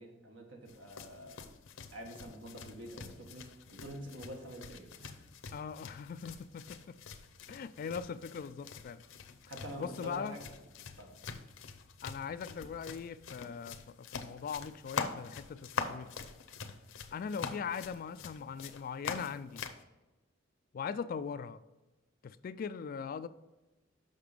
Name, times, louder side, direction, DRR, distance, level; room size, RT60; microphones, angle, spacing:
voice 1, 0.0-1.4 1.9-5.2 9.5-10.5 11.0-11.1, equal, 75° right, 1 dB, 1.7 m, -46 dB
sound 1, 0.7-19.8, left 5 dB, 90° left, 0.7 m, -45 dB
voice 2, 5.5-7.0 7.5-9.0 9.8-10.4 12.0-16.1 17.1-19.6 20.7-21.6 22.2-23.3, left 6 dB, 50° left, 14 dB, 0.3 m, -40 dB
6.7 x 5.8 x 5.2 m, 1.1 s
head